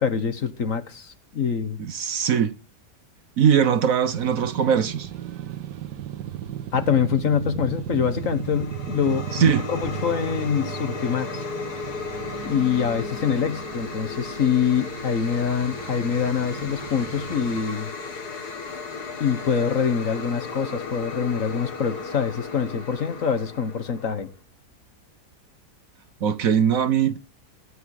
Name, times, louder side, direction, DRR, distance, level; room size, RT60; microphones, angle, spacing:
voice 1, 0.0-1.8 6.7-9.3 9.7-11.4 12.4-17.9 19.2-24.3, left 7 dB, 55° left, 1.6 m, -25 dB
voice 2, 1.8-2.5 3.4-5.1 9.3-9.7 26.2-27.2, right 8 dB, 60° right, 1.3 m, -21 dB
sound 1, 4.1-17.6, right 10 dB, 85° right, 1.6 m, -36 dB
sound 2, 7.8-24.3, left 4 dB, 70° left, 2.5 m, -35 dB
16.5 x 9.8 x 4.9 m
omnidirectional pair, 1.8 m